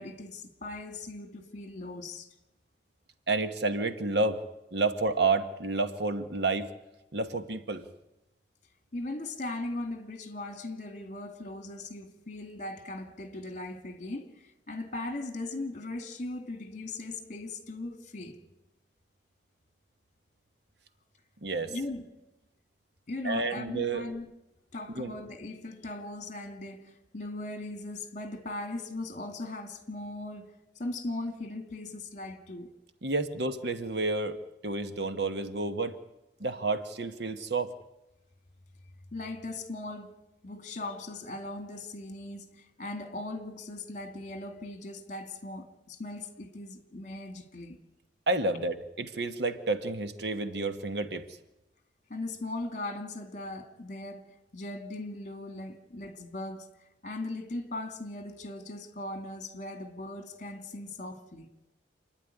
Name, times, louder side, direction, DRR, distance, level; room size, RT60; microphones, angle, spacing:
voice 1, 0.0-2.3 8.9-18.4 21.7-22.1 23.1-24.3 24.7-32.7 39.1-40.2 40.4-47.8 52.1-56.7 57.0-61.5, left 2 dB, 40° left, 2.2 m, -39 dB
voice 2, 3.3-4.4 4.7-6.7 7.1-7.8 21.4-21.7 23.2-24.0 25.0-25.2 33.0-36.0 36.4-37.7 48.3-51.3, right 3 dB, 65° right, 1.2 m, -30 dB
28.0 x 10.5 x 9.9 m
head